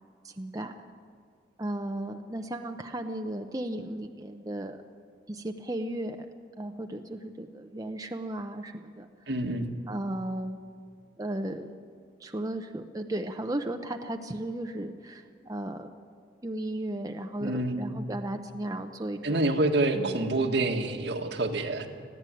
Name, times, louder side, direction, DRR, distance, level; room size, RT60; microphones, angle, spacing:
voice 1, 0.2-0.7 1.6-4.8 5.3-6.2 6.6-9.1 9.9-10.6 11.2-11.7 12.2-15.9 16.4-19.5 20.0-20.2, right 1 dB, 20° right, 5 dB, 0.7 m, -35 dB
voice 2, 9.3-9.7 17.4-18.0 19.2-21.9, right 2 dB, 70° right, 3 dB, 1.8 m, -27 dB
20.0 x 14.5 x 9.1 m, 2.2 s
head